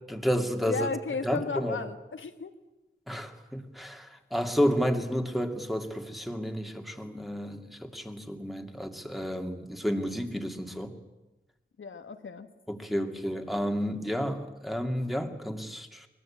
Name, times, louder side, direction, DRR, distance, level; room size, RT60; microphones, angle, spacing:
voice 1, 0.1-0.9 1.2-1.8 3.1-11.0 12.7-16.1, equal, ahead, 4 dB, 2.5 m, -31 dB
voice 2, 0.7-2.5 11.8-12.5, left 4 dB, 80° left, 8 dB, 1.4 m, -34 dB
23.5 x 20.0 x 8.7 m, 1.0 s
wide cardioid pair, 75°, 20 cm